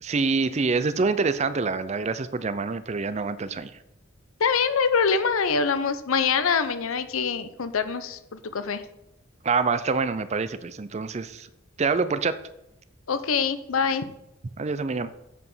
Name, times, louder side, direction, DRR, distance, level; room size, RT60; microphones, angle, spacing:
voice 1, 0.0-3.7 9.4-11.5 11.8-12.3 14.6-15.1, right 4 dB, 30° right, 13 dB, 0.4 m, -26 dB
voice 2, 4.4-8.8 13.1-14.1, left 5 dB, 85° left, 12 dB, 0.7 m, -24 dB
8.1 x 4.9 x 5.5 m, 0.86 s
head